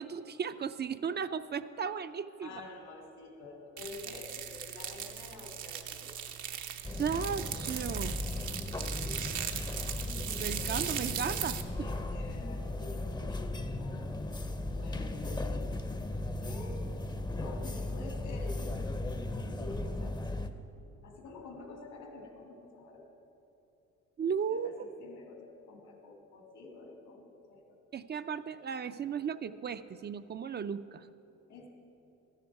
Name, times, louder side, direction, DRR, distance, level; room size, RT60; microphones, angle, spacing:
voice 1, 0.0-2.6 7.0-8.2 10.4-11.9 24.2-24.7 27.9-31.1, right 7 dB, 35° right, 11 dB, 0.4 m, -35 dB
voice 2, 2.4-6.1 8.7-9.4 11.8-14.2 14.7-16.8 17.4-20.2 21.0-23.0 24.5-27.8 31.5-31.7, left 3 dB, 80° left, 1 dB, 2.3 m, -48 dB
sound 1, 3.8-11.6, right 9 dB, 75° right, 0.8 m, -39 dB
sound 2, 6.8-20.5, left 2 dB, 15° left, 0.6 m, -36 dB
13.5 x 10.0 x 4.7 m, 2.9 s
cardioid pair, 90°, 30 cm